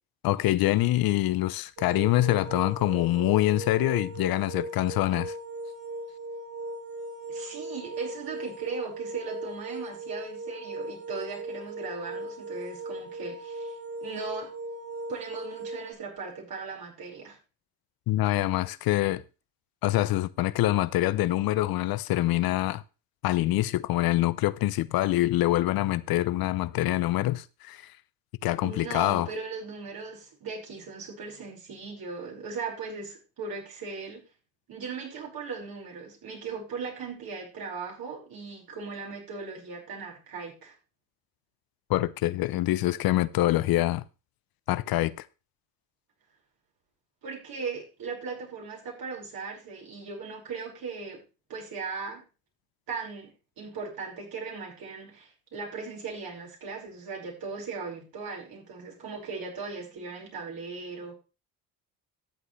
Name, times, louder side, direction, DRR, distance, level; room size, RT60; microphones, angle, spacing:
voice 1, 0.2-5.3 18.1-19.2 19.8-22.8 23.2-27.8 28.4-29.3 41.9-44.0 44.7-45.2, left 16 dB, 65° left, 0.6 m, -25 dB
sound 1, 1.8-15.9, right 1 dB, 45° right, 5.9 m, -38 dB
voice 2, 7.3-14.5 15.1-17.4 28.6-34.2 34.7-40.8 47.2-51.2 51.5-52.2 52.9-61.1, right 4 dB, 60° right, 5.0 m, -38 dB
13.0 x 7.8 x 3.2 m
supercardioid pair, 65°, 39 cm